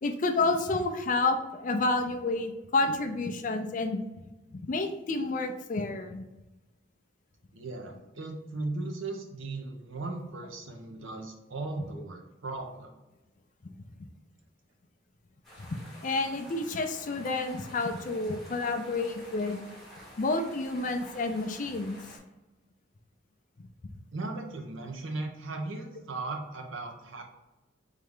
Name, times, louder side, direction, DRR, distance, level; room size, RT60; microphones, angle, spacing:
voice 1, 0.0-4.0 4.7-6.2 15.7-15.8 16.0-19.6 20.2-22.0, left 3 dB, 40° left, 6 dB, 0.4 m, -29 dB
voice 2, 7.5-12.9 24.1-27.2, right 2 dB, 75° right, 3 dB, 0.7 m, -37 dB
sound 1, 15.4-22.2, left 1 dB, ahead, 1.1 m, -50 dB
3.7 x 3.3 x 3.5 m, 1.0 s
head